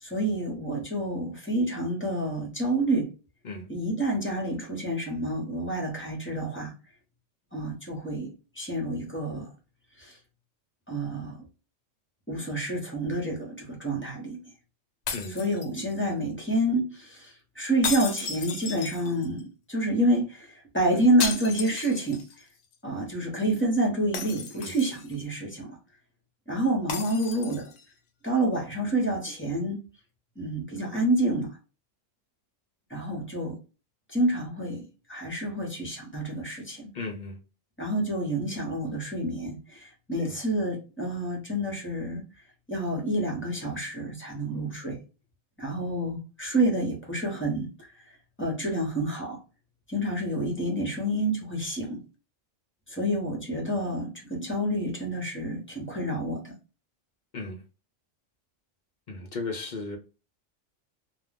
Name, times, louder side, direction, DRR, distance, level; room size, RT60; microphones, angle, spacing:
voice 1, 0.0-3.1 3.7-6.7 7.5-9.5 10.0-10.1 10.9-11.5 12.3-14.4 15.3-19.4 19.7-22.2 22.8-25.8 26.5-27.7 28.2-29.8 30.4-31.5 32.9-33.6 34.1-36.9 37.8-42.2 42.7-45.0 45.6-47.7 48.4-49.4 49.9-52.0 52.9-56.5, right 1 dB, 10° left, 0.8 m, -28 dB
sound 1, 15.1-16.1 17.8-19.4 21.2-22.4 22.7-22.8 24.1-25.2 26.9-27.8, left 6 dB, 75° left, 0.9 m, -34 dB
voice 2, 36.9-37.4 40.2-40.3 57.3-57.6 59.1-60.0, left 3 dB, 50° left, 0.6 m, -35 dB
2.4 x 2.3 x 3.3 m
omnidirectional pair, 1.3 m